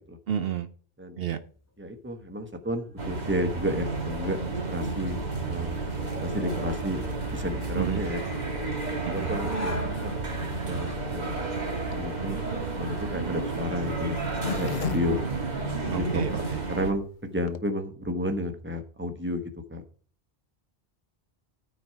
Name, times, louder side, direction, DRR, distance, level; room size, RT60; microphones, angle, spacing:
voice 1, 0.3-0.7 1.2-1.4 7.8-8.0 9.1-9.4 15.9-16.6, right 9 dB, 70° right, 11 dB, 0.9 m, -30 dB
sound 1, 1.5-10.9, left 1 dB, 15° left, 1.0 m, -45 dB
voice 2, 1.8-5.2 5.5-5.8 6.2-7.0 7.3-8.2 8.9-11.4 11.9-14.2 14.5-15.2 15.9-16.2 16.7-19.4 19.7-19.8, left 1 dB, 10° right, 6 dB, 1.2 m, -32 dB
sound 2, 3.0-16.9, right 3 dB, 45° right, 1.9 m, -31 dB
Zipper (clothing), 11.9-16.2 16.7-16.8 16.9-17.0 17.3-17.6, left 7 dB, 55° left, 0.8 m, -37 dB
13.0 x 4.6 x 5.7 m, 0.42 s
omnidirectional pair, 1.1 m